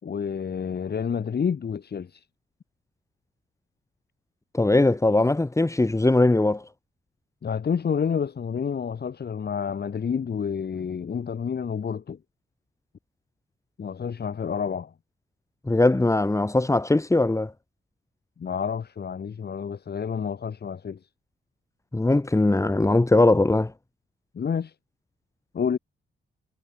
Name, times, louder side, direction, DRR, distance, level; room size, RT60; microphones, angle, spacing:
voice 1, 0.0-2.3 7.4-12.2 13.8-14.9 18.4-21.1 24.3-24.7 25.5-25.8, left 7 dB, 55° left, 5.1 m, -29 dB
voice 2, 4.5-6.6 15.7-17.5 21.9-23.7, left 2 dB, 15° left, 4.5 m, -20 dB
wide cardioid pair, 135°, 20 cm